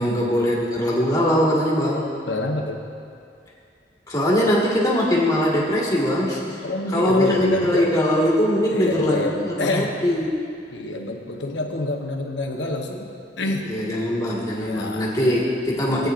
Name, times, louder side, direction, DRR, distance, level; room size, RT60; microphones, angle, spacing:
voice 1, 0.0-2.1 4.1-6.6 6.9-10.4 13.7-16.1, equal, 20° left, -5 dB, 1.8 m, -21 dB
voice 2, 2.3-2.8 6.6-7.9 8.7-9.9 10.7-13.7 14.6-15.1 15.9-16.1, left 2 dB, 75° left, 2 dB, 1.1 m, -27 dB
17.0 x 9.2 x 2.6 m, 2.4 s
head